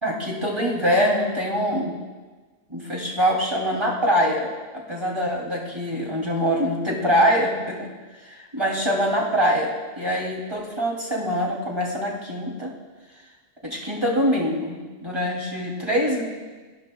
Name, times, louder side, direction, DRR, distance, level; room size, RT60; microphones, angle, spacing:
voice 1, 0.0-1.9 2.7-4.5 4.9-7.9 8.2-12.7 13.6-16.2, equal, 20° right, -2 dB, 2.9 m, -24 dB
28.5 x 19.5 x 2.3 m, 1.3 s
omnidirectional pair, 1.3 m